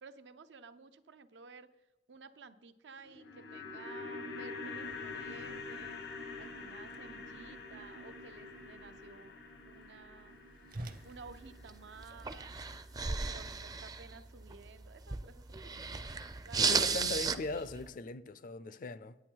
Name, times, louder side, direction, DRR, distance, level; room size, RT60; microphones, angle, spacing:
voice 1, 0.0-1.7 2.1-6.0 6.4-9.3 9.6-10.4 11.0-12.5 13.0-17.2, right 4 dB, 90° right, 0.6 m, -54 dB
sound 1, 3.0-13.3 13.5-13.6, left 3 dB, 85° left, 1.6 m, -46 dB
Whoosh swoosh swish, 4.8-12.6, right 1 dB, 55° right, 0.8 m, -53 dB
sound 2, 10.9-17.9, right 5 dB, 20° right, 0.4 m, -36 dB
voice 2, 16.6-19.2, left 3 dB, 50° left, 0.4 m, -39 dB
9.2 x 8.8 x 4.6 m
head